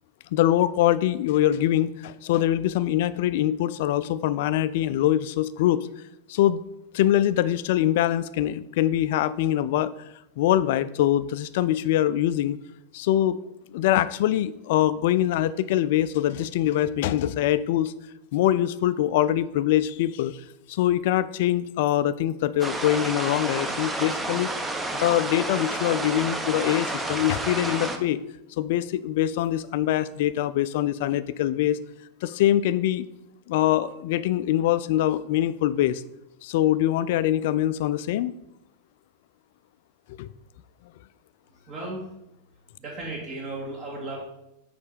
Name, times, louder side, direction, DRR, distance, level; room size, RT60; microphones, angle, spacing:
voice 1, 0.3-5.9 6.3-6.6 6.9-9.9 10.4-12.6 12.9-13.4 13.7-17.9 18.3-20.4 20.7-24.5 25.0-28.2 28.6-31.8 32.2-33.1 33.5-36.0 36.4-38.3 40.1-40.3, left 12 dB, 50° left, 15 dB, 0.3 m, -23 dB
sound 1, 22.6-28.0, right 2 dB, 10° right, 0.7 m, -30 dB
voice 2, 41.7-42.1 42.8-44.2, right 2 dB, 35° right, -4 dB, 1.8 m, -35 dB
6.4 x 5.2 x 5.1 m, 0.86 s
figure-of-eight pair, 90°, 0 cm